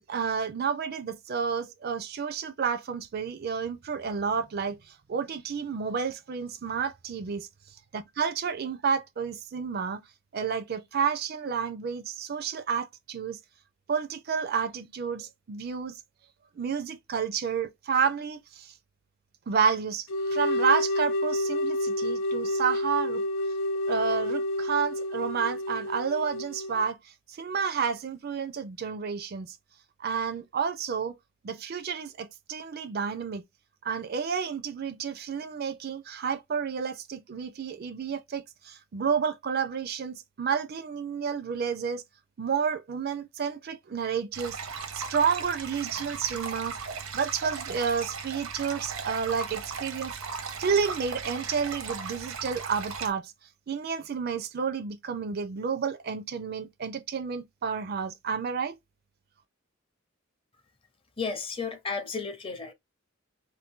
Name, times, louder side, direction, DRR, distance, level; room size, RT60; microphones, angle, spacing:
voice 1, 0.1-7.5 7.9-10.0 10.3-13.4 13.9-16.0 16.6-18.7 19.5-23.2 23.9-27.0 27.3-29.6 30.0-31.1 31.4-33.4 33.8-42.0 42.4-44.6 44.9-46.8 47.1-50.2 50.6-53.3 53.7-58.8, right 6 dB, 50° right, 0.4 m, -30 dB
sound 1, 20.1-26.8, left 1 dB, 70° left, 0.4 m, -29 dB
sound 2, 44.3-53.1, right 5 dB, 85° right, 0.8 m, -37 dB
voice 2, 61.2-62.7, left 4 dB, 25° left, 0.6 m, -33 dB
2.7 x 2.5 x 3.5 m
head